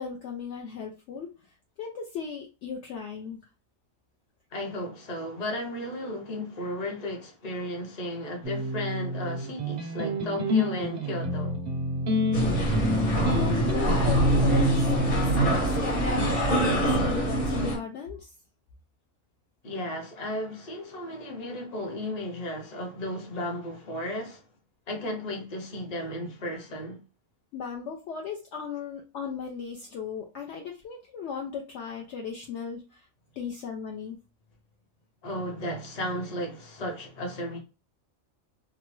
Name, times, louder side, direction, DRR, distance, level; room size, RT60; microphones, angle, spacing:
voice 1, 0.0-3.4 13.2-18.3 27.5-33.1 33.4-34.2, left 6 dB, 65° left, 0.8 m, -37 dB
voice 2, 4.5-11.6 19.6-24.4 24.9-27.0 35.2-37.6, left 1 dB, 35° left, 0.8 m, -34 dB
sound 1, 8.4-15.5, left 1 dB, 50° right, 0.5 m, -28 dB
sound 2, 12.3-17.8, right 1 dB, 90° left, 1.6 m, -25 dB
2.9 x 2.1 x 3.0 m
omnidirectional pair, 1.5 m